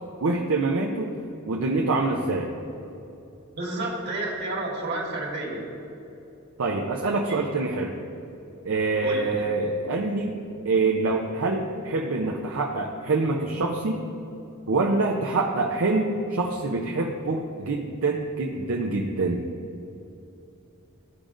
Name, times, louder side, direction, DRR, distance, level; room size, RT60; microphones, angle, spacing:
voice 1, 0.2-1.1 1.5-2.5 6.6-7.9 8.6-10.4 10.6-14.1 14.7-19.4, right 3 dB, 65° right, 0 dB, 0.5 m, -25 dB
voice 2, 3.5-5.6 7.3-7.4 9.0-9.4, right 2 dB, 50° right, -3 dB, 1.6 m, -31 dB
13.5 x 5.0 x 2.5 m, 2.8 s
head